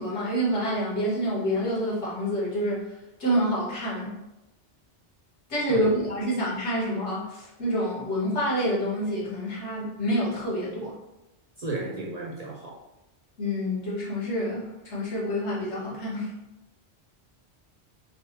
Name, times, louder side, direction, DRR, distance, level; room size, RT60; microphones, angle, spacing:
voice 1, 0.0-2.8 3.2-4.2 5.5-10.9 13.4-16.3, equal, 90° left, -6 dB, 1.6 m, -27 dB
voice 2, 11.6-12.8, right 2 dB, 50° right, -3 dB, 0.5 m, -33 dB
3.3 x 2.0 x 4.1 m, 0.95 s
omnidirectional pair, 1.1 m